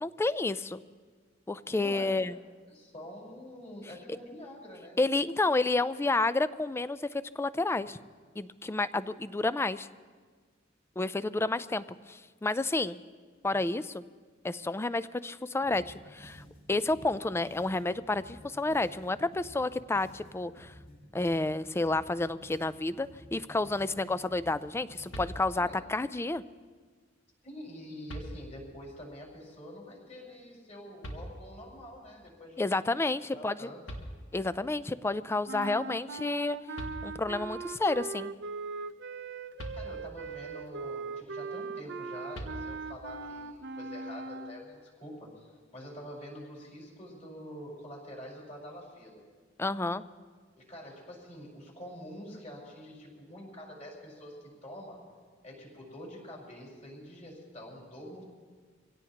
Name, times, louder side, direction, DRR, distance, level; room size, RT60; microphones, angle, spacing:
voice 1, 0.0-0.8 1.5-2.4 5.0-8.0 8.4-9.9 11.0-13.0 13.4-14.0 14.4-16.4 16.7-20.7 21.1-26.4 32.6-33.7 34.3-36.6 37.0-38.3 49.6-50.0, left 2 dB, 15° left, 15 dB, 0.3 m, -30 dB
voice 2, 1.7-2.1 2.7-5.0 25.5-25.8 27.4-32.7 33.3-33.8 39.8-49.2 50.6-55.0 55.4-58.2, equal, 35° left, -2 dB, 5.1 m, -46 dB
sound 1, 15.6-25.5, equal, 65° left, 6.5 m, -53 dB
sound 2, 25.1-25.9 27.4-27.5 28.1-28.8 31.0-31.8 33.5-33.6 33.9-34.7 36.4-36.5 36.7-37.5 39.6-40.4 42.3-43.1, equal, 80° left, 1.9 m, -43 dB
sound 3, 35.5-44.6, right 4 dB, 65° right, 0.6 m, -40 dB
25.5 x 17.0 x 2.9 m, 1.5 s
head